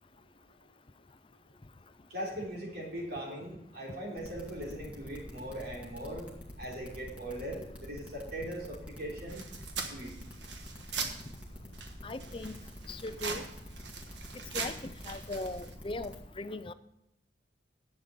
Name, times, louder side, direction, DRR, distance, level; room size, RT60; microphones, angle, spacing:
voice 1, 2.1-6.3 6.6-9.4 9.9-10.1, right 1 dB, 60° right, -2 dB, 3.6 m, -40 dB
sound 1, 4.2-16.2, equal, 5° right, 2.1 m, -47 dB
sound 2, 9.3-11.4 11.7-15.7, right 5 dB, 85° right, 1.4 m, -41 dB
voice 2, 12.0-12.6 12.9-13.4 14.5-16.7, left 2 dB, 30° left, 12 dB, 0.5 m, -39 dB
11.0 x 8.2 x 5.2 m, 0.84 s
head